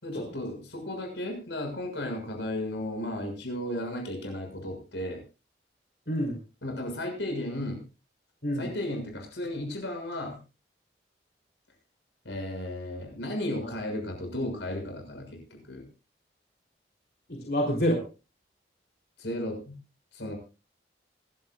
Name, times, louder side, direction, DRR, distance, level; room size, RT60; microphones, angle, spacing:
voice 1, 0.0-5.2 6.6-7.8 8.6-10.4 12.2-15.8 19.2-19.8 20.1-20.3, left 1 dB, 90° left, 3 dB, 6.6 m, -34 dB
voice 2, 6.1-6.4 8.4-8.7 13.6-13.7 17.3-18.0, equal, 60° left, -1 dB, 3.8 m, -28 dB
26.5 x 12.5 x 2.4 m, 0.32 s
head